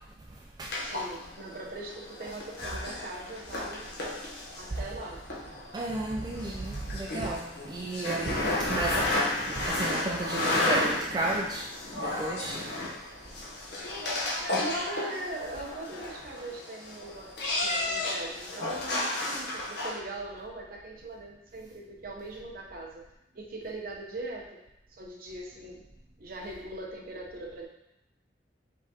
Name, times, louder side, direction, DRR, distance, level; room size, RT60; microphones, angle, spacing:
voice 1, 0.3-0.8 5.7-9.2 9.5-12.6, right 2 dB, 25° right, -2 dB, 0.3 m, -33 dB
sound 1, 0.7-19.9, left 2 dB, 65° left, 1.0 m, -33 dB
voice 2, 0.8-3.9 4.6-5.2 14.5-23.0 23.3-24.6 24.9-25.8 26.2-27.7, right 2 dB, 55° right, -1 dB, 0.8 m, -40 dB
5.0 x 3.5 x 2.8 m, 0.87 s
head